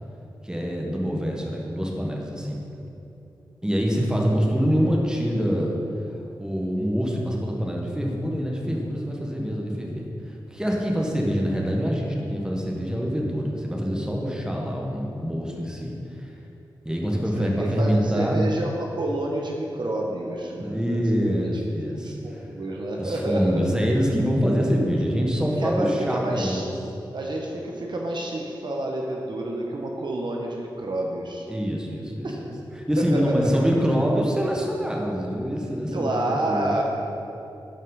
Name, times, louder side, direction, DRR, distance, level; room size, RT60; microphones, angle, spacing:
voice 1, 0.4-2.6 3.6-5.8 6.4-15.9 16.2-16.3 16.8-18.5 20.6-22.5 23.0-26.7 31.5-32.5 32.9-36.8, equal, 10° right, -1 dB, 1.4 m, -25 dB
voice 2, 17.4-21.0 22.0-23.7 25.6-26.6 27.1-31.5 32.2-32.5 33.1-33.5 35.9-36.8, right 1 dB, 65° right, -1 dB, 1.0 m, -29 dB
10.5 x 5.4 x 4.0 m, 2.8 s
cardioid pair, 55°, 8 cm